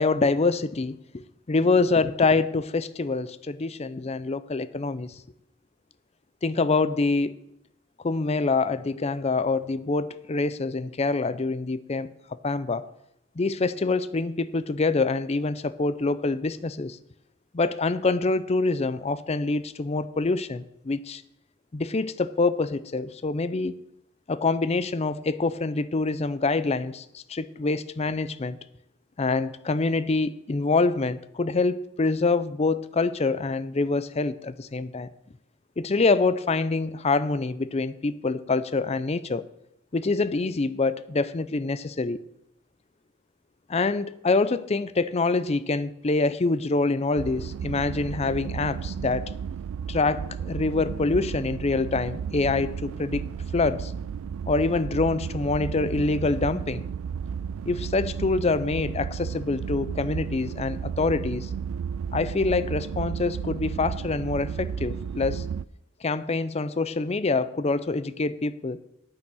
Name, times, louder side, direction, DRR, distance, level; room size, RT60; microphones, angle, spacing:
voice 1, 0.0-5.2 6.4-7.3 8.0-12.1 12.4-12.8 13.4-17.0 17.5-21.2 21.7-23.8 24.3-28.6 29.2-35.1 35.8-39.4 39.9-42.2 43.7-49.3 49.9-53.2 53.5-53.9 54.5-56.9 57.7-61.5 62.1-65.4 66.0-68.8, left 3 dB, 30° left, 15 dB, 0.5 m, -25 dB
sound 1, 47.2-65.6, right 7 dB, 90° right, 0.3 m, -33 dB
9.2 x 8.7 x 6.2 m, 0.81 s
head